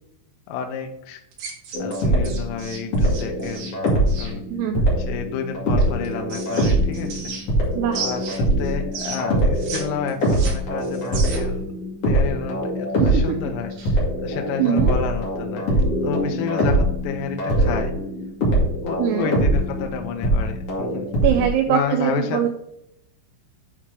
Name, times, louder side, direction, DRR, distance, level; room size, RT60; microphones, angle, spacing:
voice 1, 0.5-1.2 1.8-3.8 4.2-4.4 5.0-7.3 8.0-11.6 12.0-13.7 14.2-17.9 18.8-21.1 21.7-22.4, left 6 dB, 85° left, 4 dB, 3.3 m, -30 dB
sound 1, 1.3-4.3 5.8-7.6 7.9-9.8 10.1-11.6, right 5 dB, 60° right, 3.3 m, -34 dB
sound 2, 1.7-2.5 2.9-21.5, right 1 dB, 65° left, 1.4 m, -23 dB
voice 2, 4.5-5.0 7.7-8.0 13.0-13.2 13.8-13.9 14.6-15.0 19.0-19.3 21.2-22.5, right 10 dB, 85° right, 6 dB, 2.7 m, -22 dB
8.7 x 3.6 x 4.5 m, 0.78 s
omnidirectional pair, 6.0 m